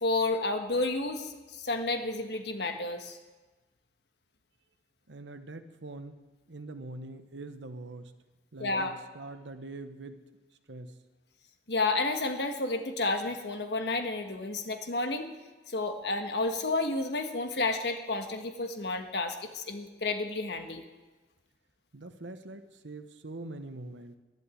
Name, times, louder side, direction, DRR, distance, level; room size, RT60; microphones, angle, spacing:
voice 1, 0.0-3.2 8.6-8.9 11.7-15.3 15.7-20.8, left 2 dB, 70° left, 6 dB, 1.4 m, -31 dB
voice 2, 5.1-6.2 6.5-8.1 8.5-10.2 10.7-10.9 21.9-24.2, right 2 dB, 85° right, 8 dB, 1.0 m, -43 dB
12.0 x 11.5 x 8.4 m, 1.2 s
head